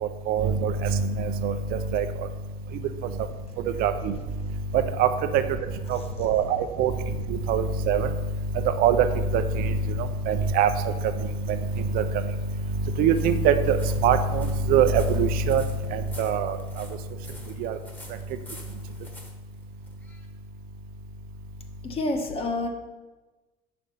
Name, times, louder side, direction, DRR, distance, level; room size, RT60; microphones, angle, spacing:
voice 1, 0.0-2.1 3.7-4.1 4.7-5.6 5.9-6.9 7.3-8.1 8.5-11.1 11.5-12.3 12.8-15.6 15.9-16.9 17.6-17.8, right 6 dB, 60° right, 9 dB, 0.6 m, -23 dB
sound 1, 12.1-20.3, left 1 dB, 10° left, 1.2 m, -49 dB
voice 2, 21.8-22.7, left 2 dB, 35° left, 3 dB, 1.2 m, -28 dB
6.4 x 5.1 x 5.6 m, 1.2 s
cardioid pair, 130°, 17 cm